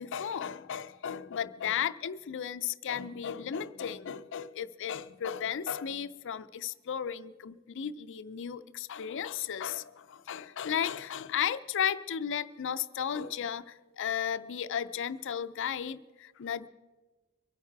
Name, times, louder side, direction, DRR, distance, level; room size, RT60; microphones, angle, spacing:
voice 1, 0.0-16.7, left 8 dB, 60° left, 0.5 m, -34 dB
24.0 x 9.3 x 4.6 m
head